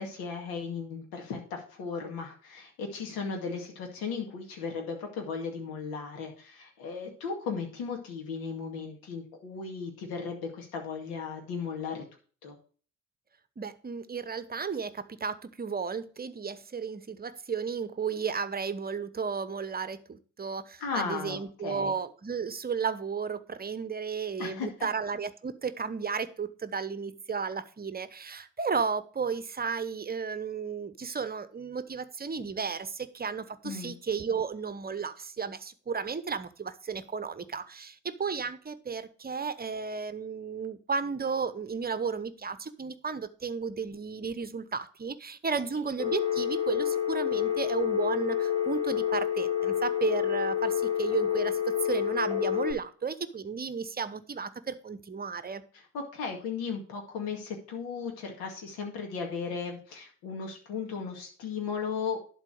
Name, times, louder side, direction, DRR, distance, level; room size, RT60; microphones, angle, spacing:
voice 1, 0.0-12.0 12.4-12.6 20.8-21.9 24.4-24.7 33.6-33.9 55.7-62.2, left 5 dB, 65° left, 2 dB, 2.1 m, -36 dB
voice 2, 13.6-55.6, right 5 dB, 25° right, 13 dB, 1.0 m, -33 dB
Telephone, 46.0-52.7, left 9 dB, 15° left, 5.1 m, -28 dB
11.5 x 4.1 x 6.4 m, 0.41 s
hypercardioid pair, 55°, 38 cm